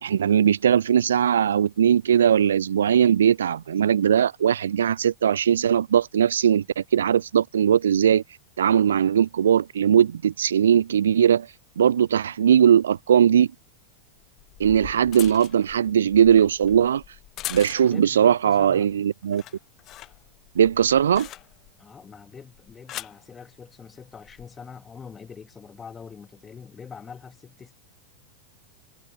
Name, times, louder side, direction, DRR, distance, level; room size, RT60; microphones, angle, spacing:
voice 1, 0.0-8.2 8.6-11.5 11.8-13.5 14.6-17.0 17.5-19.4 20.6-21.3, right 9 dB, 65° right, 0.5 m, -19 dB
sound 1, 12.9-13.0 14.2-18.2 18.6-18.9 19.2-21.8 22.5-23.2 24.1-24.4, left 14 dB, 35° left, 1.0 m, -41 dB
voice 2, 17.9-18.9 21.8-27.7, left 6 dB, 20° left, 2.4 m, -43 dB
figure-of-eight pair, 90°, 0 cm